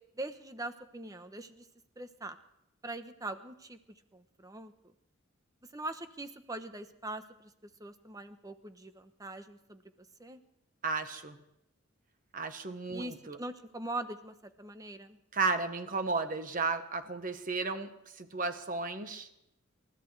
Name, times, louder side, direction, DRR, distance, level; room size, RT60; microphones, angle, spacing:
voice 1, 0.2-1.7 2.0-2.4 2.8-3.8 4.1-4.7 5.7-7.5 7.8-9.8 10.2-10.4 12.9-15.2, right 2 dB, 15° right, 9 dB, 0.9 m, -42 dB
voice 2, 10.8-11.4 12.3-13.4 15.3-19.3, right 4 dB, 40° right, 8 dB, 1.1 m, -34 dB
28.0 x 14.0 x 3.3 m, 0.83 s
head